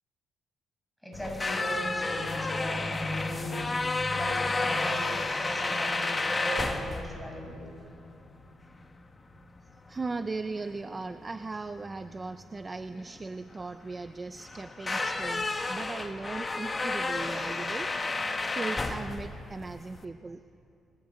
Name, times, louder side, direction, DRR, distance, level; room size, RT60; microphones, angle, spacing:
voice 1, 1.0-5.1 5.4-7.7, right 1 dB, 5° left, 0 dB, 6.6 m, -38 dB
sound 1, 1.1-20.0, left 3 dB, 20° left, 1.7 m, -32 dB
voice 2, 9.9-17.9 18.4-20.5, right 3 dB, 25° right, 9 dB, 0.7 m, -38 dB
28.5 x 22.5 x 8.6 m, 2.6 s
cardioid pair, 125°, 0 cm